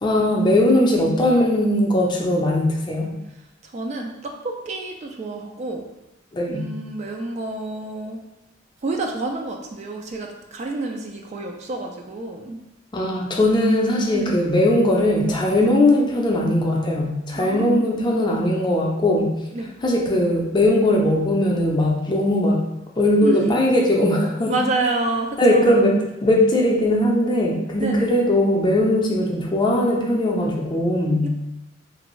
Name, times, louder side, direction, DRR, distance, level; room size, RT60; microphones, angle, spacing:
voice 1, 0.0-3.1 6.3-6.7 12.9-19.3 19.8-22.6 23.0-24.5 25.4-25.9 26.2-31.3, left 1 dB, 25° left, -1 dB, 0.5 m, -19 dB
voice 2, 3.6-5.8 6.5-8.2 8.8-12.6 14.1-14.3 15.6-15.7 17.4-17.9 19.5-19.7 23.2-23.6 24.5-25.9 27.8-28.1 31.2-31.3, right 2 dB, 35° right, 2 dB, 0.3 m, -28 dB
3.1 x 2.6 x 3.0 m, 0.95 s
head